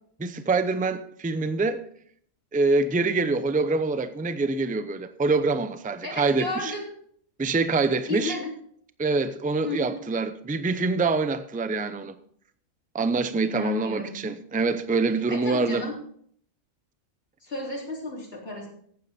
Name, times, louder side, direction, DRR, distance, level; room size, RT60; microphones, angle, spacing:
voice 1, 0.2-1.8 2.5-6.7 7.4-8.4 9.0-12.2 12.9-15.9, right 3 dB, 10° right, 0.4 m, -25 dB
voice 2, 6.0-6.9 8.1-8.5 9.6-10.0 13.4-14.2 15.3-15.9 17.4-18.7, left 2 dB, 45° left, 3.8 m, -33 dB
14.5 x 9.5 x 4.4 m
omnidirectional pair, 1.4 m